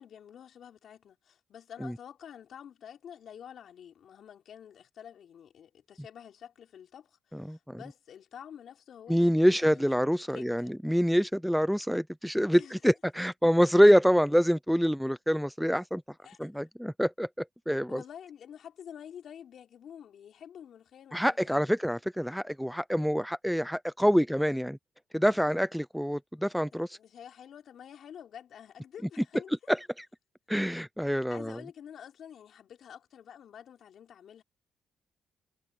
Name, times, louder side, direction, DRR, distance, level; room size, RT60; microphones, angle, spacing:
voice 1, 0.0-10.7 12.5-12.9 16.2-16.7 17.9-21.8 26.7-29.7 30.7-30.8 31.3-34.4, left 9 dB, 65° left, 4.0 m, -49 dB
voice 2, 7.3-7.8 9.1-16.0 16.4-17.3 17.7-18.0 21.1-24.8 25.1-27.0 29.7-29.8 30.5-31.6, equal, ahead, 0.5 m, -26 dB
cardioid pair, 90°, 0 cm